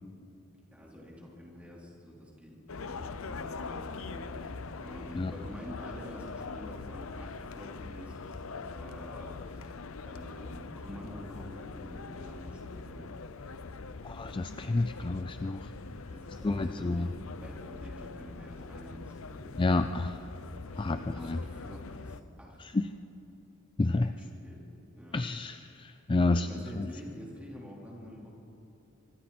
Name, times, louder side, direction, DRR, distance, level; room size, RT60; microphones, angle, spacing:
voice 1, 0.7-13.1 16.1-17.1 17.4-19.9 20.7-22.8 23.9-24.6 25.0-25.2 26.2-28.3, equal, 5° right, -4 dB, 4.2 m, -47 dB
sound 1, 2.7-22.2, left 4 dB, 85° left, 0.8 m, -43 dB
voice 2, 14.0-15.7 16.4-17.1 19.6-20.2 20.8-21.4 22.6-22.9 23.8-24.1 25.1-26.5 26.8-26.9, left 2 dB, 25° left, 9 dB, 0.4 m, -29 dB
25.5 x 24.0 x 4.4 m, 2.9 s
head